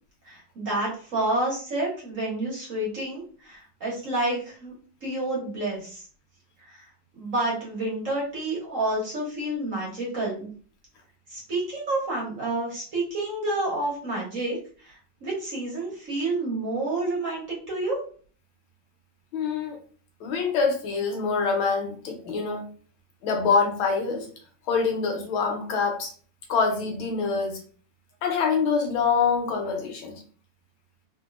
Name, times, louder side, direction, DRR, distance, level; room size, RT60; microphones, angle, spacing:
voice 1, 0.3-4.7 5.0-6.0 6.7-6.8 7.2-10.5 11.3-14.6 14.8-18.0, right 2 dB, 45° right, -4 dB, 1.2 m, -29 dB
voice 2, 19.3-19.8 20.2-22.6 23.2-24.3 24.7-26.1 26.5-27.6 28.2-30.2, left 5 dB, 80° left, 3 dB, 1.5 m, -25 dB
3.5 x 2.6 x 2.4 m, 0.43 s
omnidirectional pair, 2.2 m